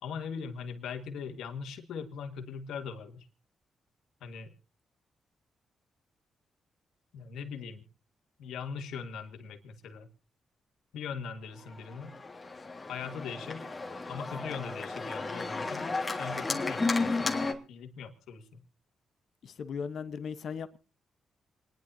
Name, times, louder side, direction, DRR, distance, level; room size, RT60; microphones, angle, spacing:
voice 1, 0.0-3.3 4.2-4.5 7.1-7.8 8.4-10.1 10.9-12.1 12.9-13.7 14.1-18.6, left 6 dB, 85° left, 1.6 m, -40 dB
Organ, 11.7-17.5, left 3 dB, 30° left, 1.7 m, -33 dB
voice 2, 19.4-20.8, left 6 dB, 70° left, 1.0 m, -37 dB
27.0 x 10.5 x 2.7 m
cardioid pair, 65°, 0 cm